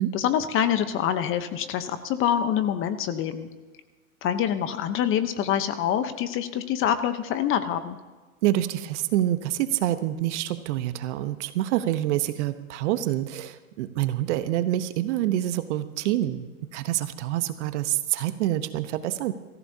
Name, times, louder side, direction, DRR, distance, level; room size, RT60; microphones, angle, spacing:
voice 1, 0.1-3.5 4.2-8.0, left 9 dB, 30° left, 11 dB, 0.9 m, -25 dB
voice 2, 8.4-16.5 16.7-19.3, right 13 dB, 55° right, 11 dB, 1.0 m, -26 dB
25.0 x 15.0 x 2.8 m, 1.3 s
hypercardioid pair, 120°, 43 cm